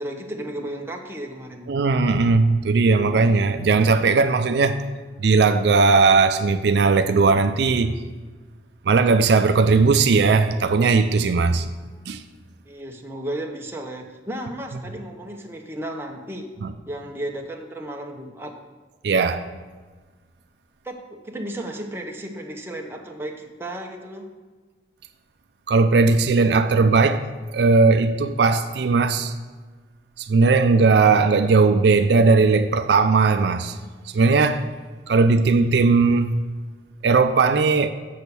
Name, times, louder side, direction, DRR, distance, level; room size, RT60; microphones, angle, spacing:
voice 1, 0.0-1.8 12.7-16.5 16.9-18.5 20.8-24.3, right 1 dB, 15° right, 0.8 m, -34 dB
voice 2, 1.7-4.8 5.2-7.9 8.9-11.7 12.1-12.2 16.6-16.7 19.0-19.5 25.7-29.3 30.2-33.8 34.1-34.6 35.1-36.4 37.0-37.9, right 4 dB, 70° right, 0.4 m, -18 dB
7.0 x 6.3 x 6.9 m
head